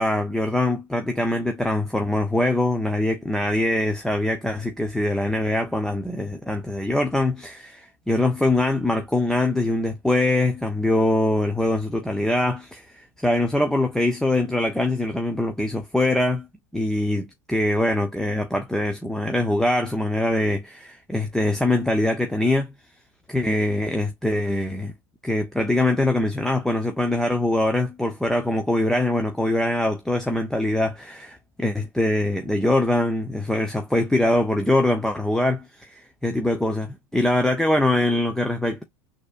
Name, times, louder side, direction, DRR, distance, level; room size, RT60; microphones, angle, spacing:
voice 1, 0.0-16.5 16.7-22.7 23.3-24.9 25.2-38.8, left 1 dB, 5° left, 0.7 m, -23 dB
6.4 x 2.8 x 2.4 m
figure-of-eight pair, 85°, 16 cm